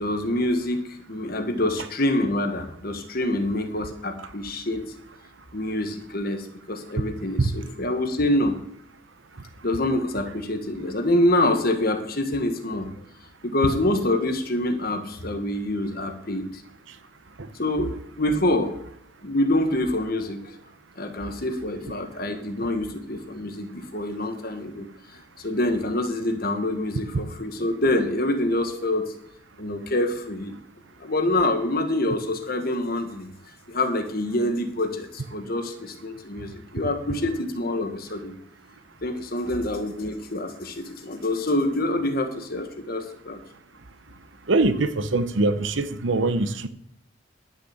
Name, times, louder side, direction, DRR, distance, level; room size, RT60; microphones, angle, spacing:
voice 1, 0.0-4.9 5.5-8.6 9.6-12.9 13.4-16.6 17.6-18.7 19.2-20.6 21.0-24.9 25.4-29.1 29.6-30.6 31.0-33.3 33.7-38.3 39.0-43.4, left 1 dB, 50° left, 1.5 m, -26 dB
voice 2, 44.5-46.7, right 2 dB, 70° right, 0.9 m, -22 dB
11.5 x 6.8 x 7.2 m
head